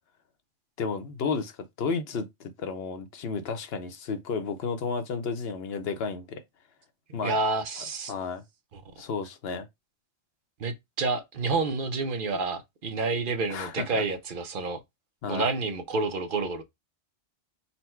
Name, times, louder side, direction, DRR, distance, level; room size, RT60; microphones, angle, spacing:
voice 1, 0.8-1.5 1.8-6.4 7.1-7.4 8.1-8.4 9.0-9.6 13.5-14.0 15.2-15.5, left 5 dB, 65° left, 0.9 m, -32 dB
voice 2, 7.2-8.1 8.7-8.8 10.6-14.8 15.3-16.6, right 3 dB, 55° right, 0.8 m, -29 dB
4.1 x 2.1 x 4.3 m
omnidirectional pair, 1.1 m